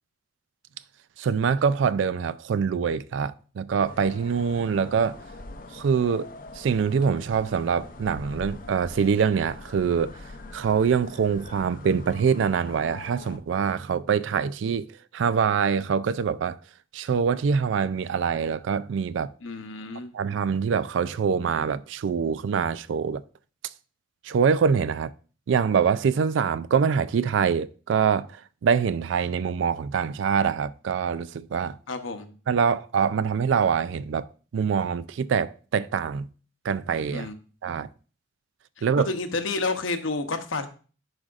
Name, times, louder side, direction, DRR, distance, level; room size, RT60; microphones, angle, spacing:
voice 1, 1.2-5.2 5.7-6.3 6.6-10.1 10.5-14.9 15.1-16.6 16.9-19.3 20.1-23.2 24.2-25.1 25.5-28.3 28.6-31.8 32.5-34.3 34.5-36.3 36.6-37.3 37.6-37.9 38.8-39.1, right 6 dB, 70° right, 0.3 m, -24 dB
sound 1, 3.8-13.4, left 2 dB, 45° left, 0.6 m, -43 dB
voice 2, 19.4-20.1 31.9-32.3 37.1-37.3 37.7-37.8 39.0-40.7, left 3 dB, 80° left, 0.8 m, -30 dB
11.0 x 4.9 x 2.5 m
head